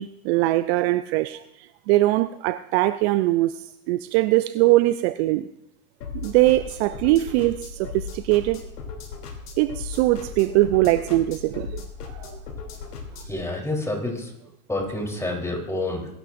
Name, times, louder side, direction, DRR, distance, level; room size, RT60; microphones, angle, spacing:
voice 1, 0.0-5.5 6.2-8.6 9.6-12.4, right 17 dB, 45° right, 0.5 m, -22 dB
sound 1, 6.0-13.4, left 5 dB, 80° left, 3.2 m, -37 dB
voice 2, 13.3-14.3 14.7-16.1, left 2 dB, 5° left, 3.7 m, -28 dB
22.0 x 12.0 x 2.6 m
hypercardioid pair, 100°, 46 cm